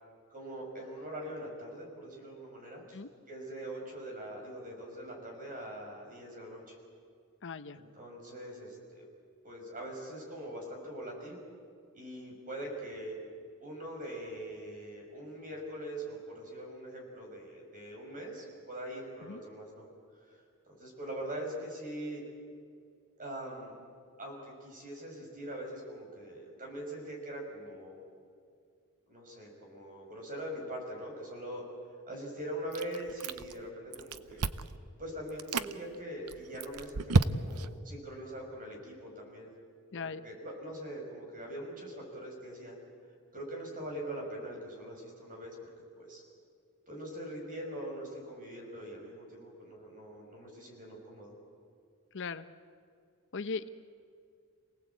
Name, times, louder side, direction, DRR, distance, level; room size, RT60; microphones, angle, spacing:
voice 1, 0.3-3.0 3.3-6.7 7.7-9.1 9.4-11.4 11.9-13.2 13.6-19.9 20.3-22.2 23.2-23.8 24.2-28.1 29.1-31.6 32.1-34.4 35.0-39.5 39.9-42.7 43.3-45.5 46.0-46.2 46.9-51.3, right 1 dB, 40° right, 0 dB, 6.1 m, -42 dB
voice 2, 7.4-7.8 19.2-19.4 39.9-40.2 52.1-52.5 53.3-53.7, left 4 dB, 55° left, 11 dB, 0.8 m, -38 dB
Chewing mastication, 32.7-33.6 33.9-34.8 35.3-35.7 36.3-37.7, right 4 dB, 90° right, 0.7 m, -30 dB
27.5 x 18.0 x 8.4 m, 2.2 s
head